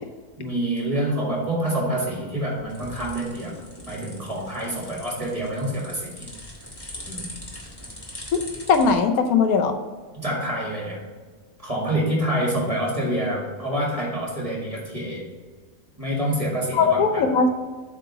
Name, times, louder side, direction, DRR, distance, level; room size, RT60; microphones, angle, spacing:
voice 1, 0.4-3.6 3.9-6.3 7.0-7.3 10.1-11.0 11.6-15.3 16.0-17.3, right 1 dB, 25° right, -3 dB, 1.9 m, -27 dB
sound 1, 2.2-8.9, left 1 dB, 15° left, 1.3 m, -41 dB
voice 2, 8.7-9.7 16.7-17.5, left 5 dB, 80° left, 6 dB, 1.1 m, -19 dB
7.7 x 3.7 x 5.6 m, 1.4 s
omnidirectional pair, 1.5 m